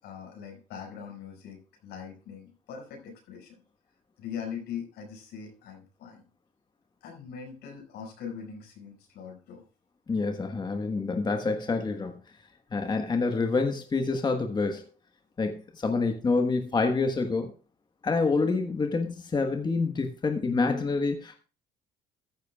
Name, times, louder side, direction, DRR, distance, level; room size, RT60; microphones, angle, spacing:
voice 1, 0.0-3.6 4.2-6.2 7.0-9.6, left 7 dB, 80° left, 2 dB, 5.9 m, -41 dB
voice 2, 10.1-12.1 12.7-14.8 15.4-17.5 18.0-21.4, left 4 dB, 25° left, 5 dB, 1.4 m, -27 dB
14.0 x 12.0 x 2.4 m, 0.36 s
cardioid pair, 110°, 17 cm